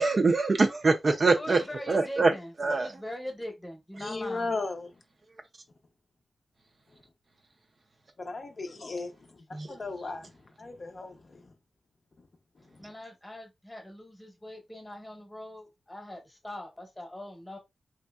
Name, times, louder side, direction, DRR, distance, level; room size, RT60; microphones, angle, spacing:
voice 1, 0.0-1.6 1.9-2.3 2.6-2.9 9.5-9.7, right 3 dB, 40° right, 0.4 m, -23 dB
voice 2, 1.4-4.5 9.5-9.7 12.8-17.6, equal, 10° left, 0.9 m, -41 dB
voice 3, 4.0-4.9 8.2-9.1 9.7-10.2 10.6-11.1, left 3 dB, 45° left, 0.5 m, -35 dB
3.1 x 2.6 x 2.2 m
wide cardioid pair, 140°, 0 cm